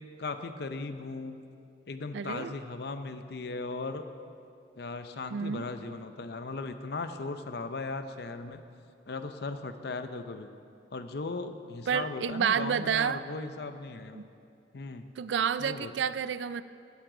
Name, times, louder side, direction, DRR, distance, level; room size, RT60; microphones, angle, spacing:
voice 1, 0.0-1.4 1.9-4.0 4.8-8.6 9.1-10.5 10.9-14.2 14.7-15.1 15.6-15.9, left 3 dB, 60° left, 9 dB, 0.7 m, -37 dB
voice 2, 2.1-2.5 5.3-5.7 11.9-13.2 14.1-14.2 15.2-16.6, right 7 dB, 85° right, 15 dB, 0.4 m, -29 dB
16.5 x 9.7 x 3.9 m, 2.5 s
head